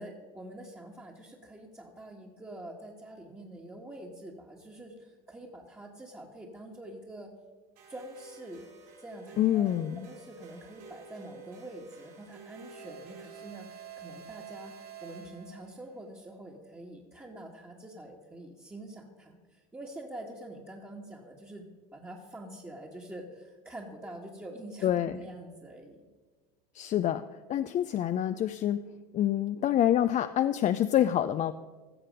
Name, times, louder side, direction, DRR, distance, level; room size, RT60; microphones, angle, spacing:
voice 1, 0.0-7.3 7.9-8.7 9.0-26.1, right 1 dB, 10° right, -3 dB, 1.5 m, -46 dB
sound 1, 7.8-15.8, right 6 dB, 80° right, 4.3 m, -49 dB
voice 2, 9.4-10.1 24.8-25.2 26.7-27.2 27.5-28.9 29.1-31.5, left 11 dB, 35° left, 11 dB, 0.4 m, -26 dB
15.5 x 6.6 x 5.2 m, 1.4 s
hypercardioid pair, 90°, 20 cm